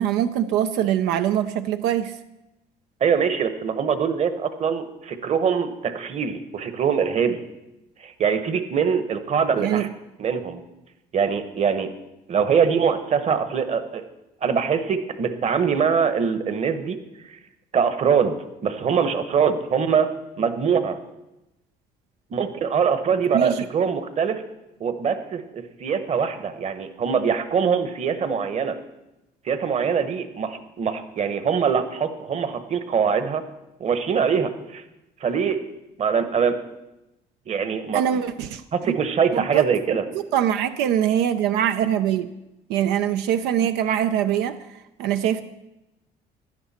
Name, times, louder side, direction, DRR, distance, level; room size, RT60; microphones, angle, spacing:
voice 1, 0.0-2.1 9.6-9.9 23.3-23.5 37.9-38.6 39.3-39.6 40.3-42.3 42.7-44.6 45.0-45.4, right 10 dB, 90° right, 9 dB, 0.6 m, -22 dB
voice 2, 3.0-7.4 8.0-9.9 10.2-10.6 11.1-11.9 12.3-14.0 14.4-17.0 17.2-17.4 17.7-18.4 18.6-21.0 22.3-24.4 24.8-28.8 29.4-33.4 33.8-34.8 35.2-35.6 36.0-36.6 37.5-38.2 38.7-40.0, right 6 dB, 40° right, 10 dB, 1.2 m, -23 dB
16.0 x 11.0 x 4.3 m, 0.95 s
cardioid pair, 110°, 17 cm